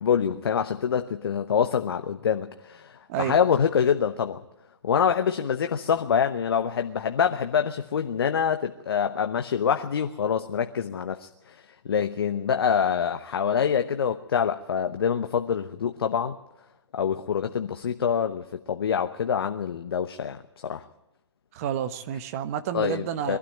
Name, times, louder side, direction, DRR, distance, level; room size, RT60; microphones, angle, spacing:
voice 1, 0.0-4.4 4.8-16.4 16.9-20.8 22.7-23.4, left 7 dB, 55° left, 7 dB, 1.0 m, -26 dB
voice 2, 21.5-23.4, right 9 dB, 30° right, 11 dB, 1.2 m, -30 dB
22.5 x 12.5 x 9.0 m, 0.96 s
figure-of-eight pair, 135°, 15 cm